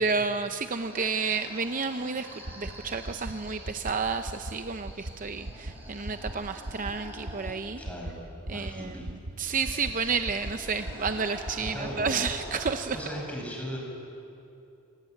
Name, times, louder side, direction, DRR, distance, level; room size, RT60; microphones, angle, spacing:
voice 1, 0.0-2.3 2.6-7.8 8.5-9.0 9.4-13.0, right 5 dB, 40° right, 8 dB, 0.6 m, -30 dB
sound 1, 0.5-7.8 9.4-13.3, equal, 10° right, 5.8 m, -46 dB
sound 2, 2.4-2.7 3.0-3.3 3.7-3.9 4.2-4.5 4.8-5.1 5.4-5.7 6.0-6.3 6.6-6.9 7.2-7.5 7.8-8.1 8.4-8.7 9.0-9.3 9.7-9.9 10.3-10.5 10.8-11.1 11.4-11.7 12.0-12.3 12.6-12.7, right 1 dB, 70° right, 1.3 m, -36 dB
voice 2, 7.8-8.1 8.5-9.1 11.6-12.2 12.9-13.8, equal, 5° left, -1 dB, 5.8 m, -37 dB
25.5 x 18.5 x 9.0 m, 2.8 s
head